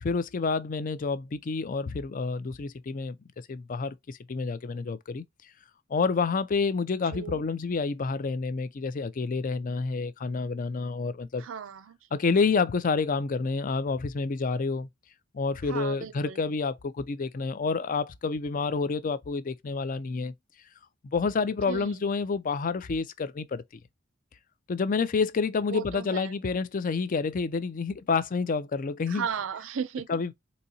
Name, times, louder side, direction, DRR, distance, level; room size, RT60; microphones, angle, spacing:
voice 1, 0.0-3.2 3.5-5.2 5.9-11.4 12.1-14.9 15.3-20.3 21.0-23.6 24.7-29.3 30.1-30.3, left 4 dB, 45° left, 0.4 m, -28 dB
voice 2, 7.1-7.4 11.4-12.0 15.7-16.4 21.7-22.0 25.7-26.3 29.1-30.2, right 7 dB, 80° right, 0.5 m, -35 dB
4.0 x 2.7 x 2.7 m
head